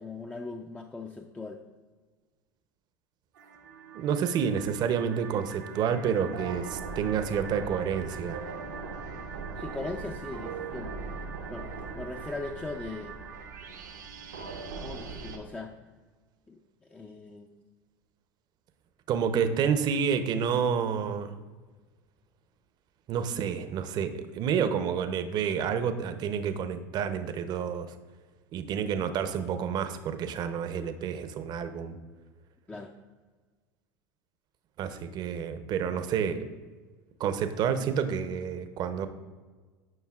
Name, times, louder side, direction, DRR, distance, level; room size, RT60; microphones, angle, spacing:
voice 1, 0.0-1.6 9.6-11.1 11.5-11.7 11.9-13.2 14.8-15.7 16.5-17.5 32.7-32.9, left 3 dB, 10° left, 3 dB, 0.4 m, -39 dB
sound 1, 3.3-15.4, right 5 dB, 90° right, 0.9 m, -40 dB
voice 2, 3.9-8.4 19.1-21.3 23.1-27.9 28.5-32.0 34.8-36.5 37.2-39.1, right 7 dB, 45° right, 10 dB, 0.6 m, -29 dB
10.5 x 5.5 x 2.4 m, 1.4 s
hypercardioid pair, 85°, 9 cm